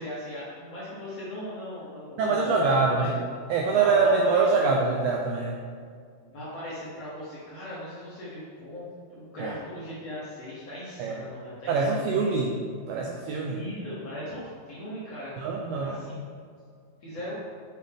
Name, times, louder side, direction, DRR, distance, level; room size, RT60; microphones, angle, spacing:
voice 1, 0.0-3.1 3.7-4.8 6.3-12.4 13.5-15.3 15.8-16.2 17.0-17.3, left 1 dB, 60° left, -9 dB, 1.7 m, -38 dB
voice 2, 2.2-3.2 3.5-5.6 9.4-9.5 11.0-11.2 11.7-12.6 12.9-13.6 15.4-16.0, right 4 dB, 85° right, 0 dB, 2.0 m, -24 dB
7.4 x 5.6 x 3.5 m, 2.1 s
omnidirectional pair, 4.5 m